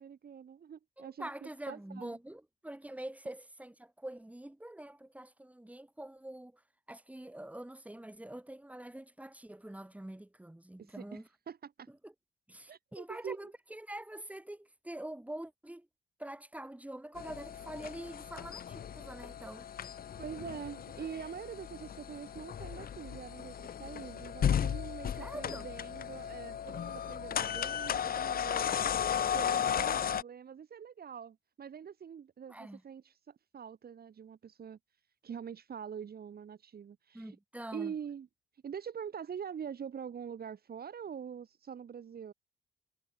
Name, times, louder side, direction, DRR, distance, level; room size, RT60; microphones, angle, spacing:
voice 1, 0.0-2.2 10.8-11.9 12.7-13.5 20.2-28.7 29.3-34.8 35.2-37.3 37.7-38.3 38.6-42.3, right 7 dB, 50° right, 3.7 m, -44 dB
voice 2, 1.0-6.6 6.9-11.3 12.0-12.1 12.5-15.9 16.2-19.7 25.2-25.7 32.5-32.8 37.1-37.9, right 1 dB, 5° right, 7.7 m, -45 dB
sound 1, 17.2-30.2, left 8 dB, 50° left, 0.9 m, -35 dB
cardioid pair, 90°, 20 cm